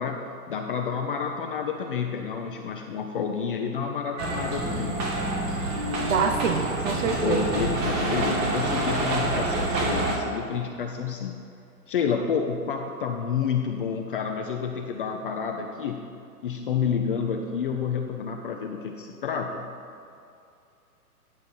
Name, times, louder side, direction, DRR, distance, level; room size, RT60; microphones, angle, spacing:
voice 1, 0.0-5.0 7.0-11.3 11.9-16.1 16.4-19.7, left 6 dB, 35° left, 3 dB, 0.5 m, -29 dB
sound 1, 4.2-10.2, right 2 dB, 20° right, 1.0 m, -27 dB
voice 2, 6.0-7.5, right 6 dB, 55° right, 5 dB, 0.8 m, -26 dB
9.6 x 4.3 x 7.0 m, 2.5 s
hypercardioid pair, 130°, 46 cm